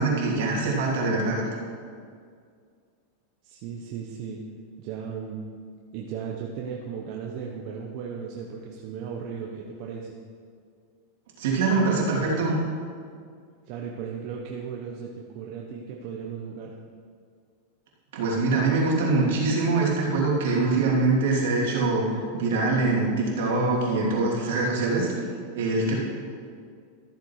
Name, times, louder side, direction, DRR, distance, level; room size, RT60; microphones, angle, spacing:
voice 1, 0.0-1.4 11.4-12.6 18.1-25.1 25.5-26.0, right 3 dB, 75° right, -3 dB, 3.0 m, -23 dB
voice 2, 3.4-4.4 4.8-5.4 5.9-10.2 13.7-16.7, right 6 dB, 50° right, -1 dB, 1.0 m, -36 dB
13.5 x 7.2 x 4.8 m, 2.1 s
supercardioid pair, 135°, 0 cm